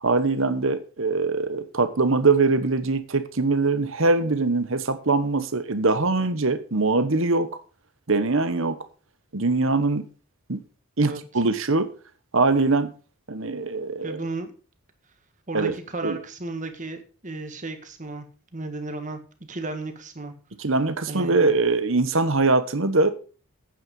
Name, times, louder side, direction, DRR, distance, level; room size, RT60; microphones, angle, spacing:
voice 1, 0.0-7.5 8.1-8.8 9.3-10.0 10.5-10.6 11.0-11.9 12.3-12.9 13.3-14.2 15.5-15.7 16.0-16.2 20.6-23.1, right 3 dB, 60° right, 1.1 m, -22 dB
voice 2, 14.0-14.5 15.5-18.3 18.5-19.2 19.5-20.3 21.1-21.4, right 3 dB, 35° right, 1.6 m, -34 dB
8.9 x 8.9 x 5.3 m
head